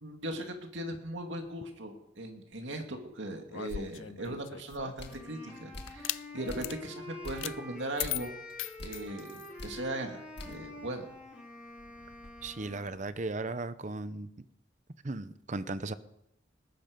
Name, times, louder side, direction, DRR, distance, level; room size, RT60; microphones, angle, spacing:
voice 1, 0.0-8.3 8.8-11.1, right 1 dB, 70° right, 4 dB, 2.3 m, -39 dB
sound 1, 3.5-5.1 5.9-6.2 6.6-6.8 7.4-7.6 8.0-9.5, left 13 dB, 80° left, 0.5 m, -38 dB
sound 2, 4.2-4.4 5.0-5.3 5.7-6.1 6.5-6.9 7.2-7.6 8.0-8.3 8.8-9.1 9.6-9.9 10.4-10.7 11.1-11.2 11.7-13.2, left 1 dB, 60° left, 1.9 m, -47 dB
Wind instrument woodwind instrument, 5.0-13.0, left 1 dB, 5° right, 4.9 m, -47 dB
voice 2, 12.4-14.3 15.0-15.9, right 2 dB, 40° right, 13 dB, 0.7 m, -36 dB
19.5 x 12.0 x 5.3 m, 0.83 s
head